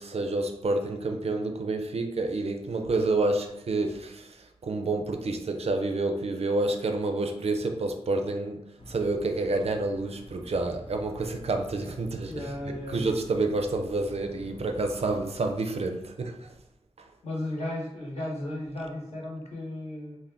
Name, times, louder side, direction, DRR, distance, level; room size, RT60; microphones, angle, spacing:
voice 1, 0.0-16.5 17.0-17.1, right 2 dB, 65° right, 0.4 m, -29 dB
sound 1, 8.8-15.6, equal, 55° left, 0.6 m, -48 dB
voice 2, 12.3-13.2 17.2-20.2, left 1 dB, 75° left, 1.0 m, -35 dB
2.5 x 2.1 x 3.4 m
wide cardioid pair, 55°, 11 cm